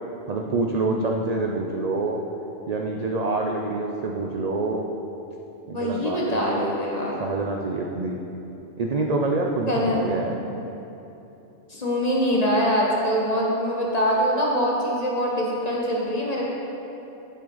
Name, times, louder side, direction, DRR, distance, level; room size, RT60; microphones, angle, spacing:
voice 1, 0.3-2.2 2.7-4.8 5.7-6.8 7.2-8.2 8.8-10.4, right 3 dB, 60° right, 1 dB, 0.4 m, -26 dB
voice 2, 5.7-7.3 9.7-10.4 11.7-16.4, equal, 30° left, -4 dB, 1.4 m, -24 dB
9.2 x 7.7 x 3.9 m, 3.0 s
omnidirectional pair, 1.3 m